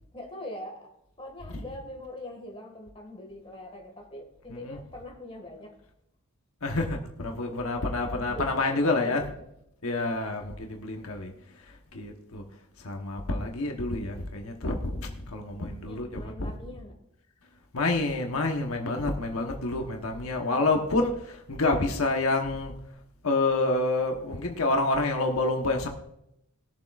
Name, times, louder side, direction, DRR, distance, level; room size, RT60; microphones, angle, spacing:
voice 1, 0.1-0.9 1.2-5.7 7.6-9.5 10.4-10.6 15.9-17.0, left 1 dB, 25° left, 2 dB, 2.0 m, -43 dB
voice 2, 6.6-9.2 9.8-11.3 11.9-12.4 12.8-16.5 17.7-22.7 23.2-25.9, left 2 dB, 75° left, 3 dB, 1.1 m, -28 dB
20.0 x 7.4 x 2.5 m, 0.80 s
head